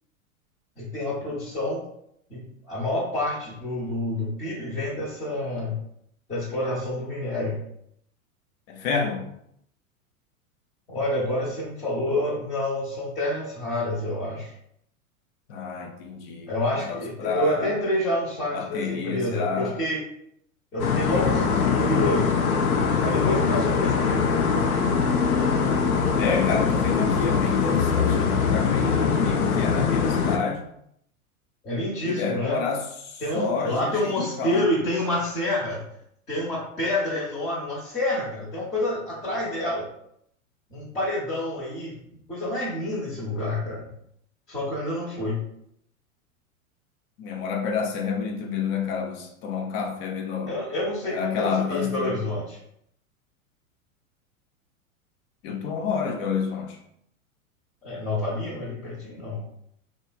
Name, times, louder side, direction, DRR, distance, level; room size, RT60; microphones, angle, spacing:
voice 1, 0.8-1.8 2.3-5.8 6.3-7.6 10.9-14.5 16.5-20.0 20.7-22.3 23.0-24.3 31.6-32.6 33.2-35.8 36.3-39.9 40.7-42.0 42.3-43.8 44.5-45.4 50.5-52.6 57.8-59.4, left 1 dB, 15° left, -8 dB, 0.8 m, -28 dB
voice 2, 8.7-9.2 15.5-16.5 16.8-17.8 18.5-19.8 26.2-30.6 32.0-34.7 47.2-50.5 51.0-52.1 55.4-56.8, left 6 dB, 45° left, 3 dB, 0.6 m, -29 dB
sound 1, 20.8-30.4, left 5 dB, 85° left, 0.5 m, -22 dB
3.1 x 2.1 x 2.3 m, 0.73 s
hypercardioid pair, 100°, 42 cm